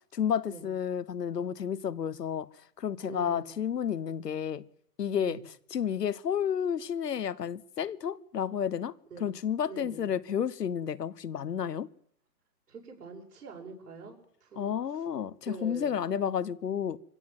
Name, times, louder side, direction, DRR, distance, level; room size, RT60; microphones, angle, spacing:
voice 1, 0.1-2.5 2.8-4.6 5.0-5.4 5.7-8.9 9.2-11.9 14.6-17.0, left 8 dB, 75° left, 1.2 m, -31 dB
voice 2, 3.0-3.5 5.2-5.4 9.1-9.3 9.7-10.0 12.7-14.8 15.5-16.0, right 4 dB, 70° right, 7.4 m, -44 dB
23.5 x 16.0 x 7.9 m
hypercardioid pair, 155°, 48 cm